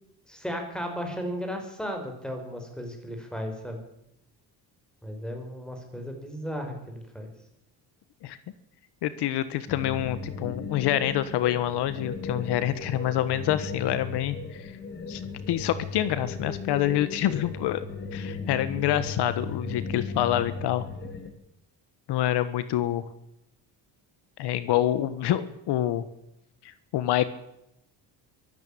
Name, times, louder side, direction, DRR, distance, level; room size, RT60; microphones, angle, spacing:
voice 1, 0.3-3.8 5.0-7.3, equal, ahead, 4 dB, 5.1 m, -35 dB
voice 2, 9.0-14.7 15.1-15.2 15.5-17.8 18.1-20.9 22.1-23.0 24.4-26.0 26.9-27.2, left 12 dB, 70° left, 14 dB, 1.6 m, -26 dB
sound 1, 9.7-21.3, left 4 dB, 25° left, 2.8 m, -36 dB
24.0 x 15.5 x 8.7 m, 0.82 s
cardioid pair, 170°, 41 cm